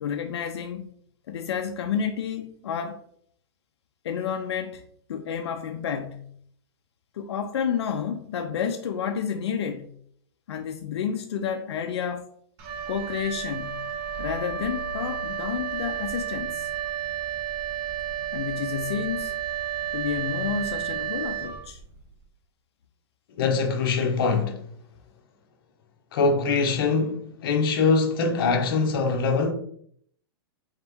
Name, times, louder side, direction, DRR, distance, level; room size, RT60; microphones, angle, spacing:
voice 1, 0.0-0.9 1.3-3.0 4.0-6.3 7.1-9.9 10.5-12.3 12.9-13.9 14.2-16.7 18.3-19.4 19.9-21.8, left 7 dB, 85° left, 0.4 m, -30 dB
Wind instrument woodwind instrument, 12.6-22.1, right 9 dB, 25° right, 0.4 m, -32 dB
voice 2, 23.4-24.6 26.1-29.5, left 4 dB, 55° left, 0.8 m, -23 dB
3.5 x 3.0 x 3.5 m
hypercardioid pair, 165°, 14 cm